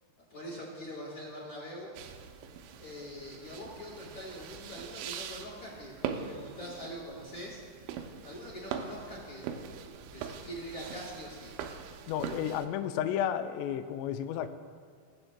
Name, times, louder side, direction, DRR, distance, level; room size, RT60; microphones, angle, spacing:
voice 1, 0.3-1.9 2.8-7.6 8.2-9.5 10.1-11.5, equal, 45° left, -5 dB, 2.7 m, -43 dB
sound 1, 2.0-12.7, right 7 dB, 85° right, 2.8 m, -42 dB
voice 2, 12.1-14.5, left 10 dB, 85° left, 7 dB, 2.5 m, -32 dB
19.5 x 7.7 x 2.2 m, 2.1 s
omnidirectional pair, 5.4 m